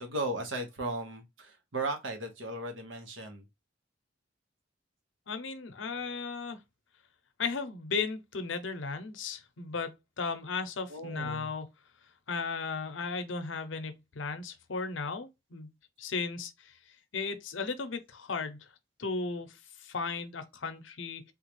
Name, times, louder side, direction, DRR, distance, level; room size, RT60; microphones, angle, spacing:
voice 1, 0.0-3.5 10.9-11.5, right 2 dB, 85° right, 1.0 m, -36 dB
voice 2, 5.3-6.6 7.4-11.7 12.3-15.7 16.0-16.7 17.1-18.7 19.0-21.3, left 4 dB, 80° left, 0.7 m, -35 dB
3.6 x 2.4 x 3.0 m
head